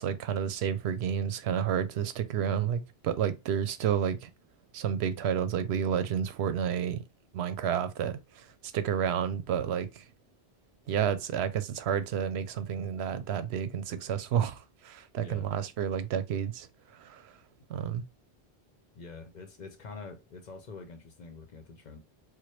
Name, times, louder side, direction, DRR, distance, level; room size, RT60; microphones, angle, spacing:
voice 1, 0.0-4.3 4.7-7.0 7.3-8.2 8.7-10.0 10.9-14.6 14.8-16.7 17.0-17.2 17.7-18.0, right 8 dB, 90° right, 0.8 m, -30 dB
voice 2, 15.2-15.5 18.9-22.0, left 4 dB, 50° left, 0.7 m, -45 dB
4.5 x 2.1 x 3.1 m
omnidirectional pair, 1.1 m